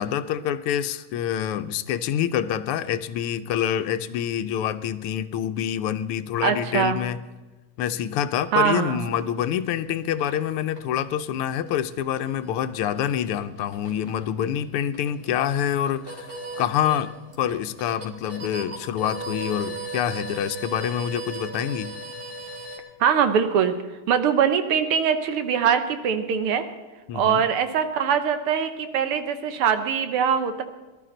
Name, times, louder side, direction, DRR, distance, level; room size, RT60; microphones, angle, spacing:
voice 1, 0.0-7.2 7.8-17.1 17.4-22.0 27.1-27.4, left 10 dB, 85° left, 12 dB, 1.6 m, -26 dB
voice 2, 6.4-7.0 8.5-9.1 23.0-23.7 24.1-26.7 27.1-30.6, right 7 dB, 85° right, 8 dB, 1.9 m, -22 dB
sound 1, 9.2-22.8, right 3 dB, 25° right, 2.8 m, -39 dB
20.0 x 12.5 x 3.9 m, 1.2 s
omnidirectional pair, 2.4 m